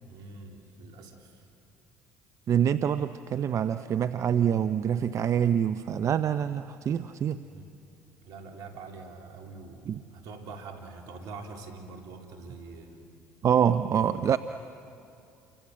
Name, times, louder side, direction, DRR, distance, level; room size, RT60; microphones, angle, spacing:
voice 1, 0.0-1.5 7.4-7.7 8.2-13.1 13.9-14.3, right 3 dB, 70° right, 3 dB, 3.4 m, -45 dB
voice 2, 2.5-7.4 9.9-10.0 13.4-14.4, right 8 dB, 50° right, 12 dB, 0.7 m, -25 dB
29.0 x 24.0 x 7.7 m, 2.7 s
hypercardioid pair, 65°, 7 cm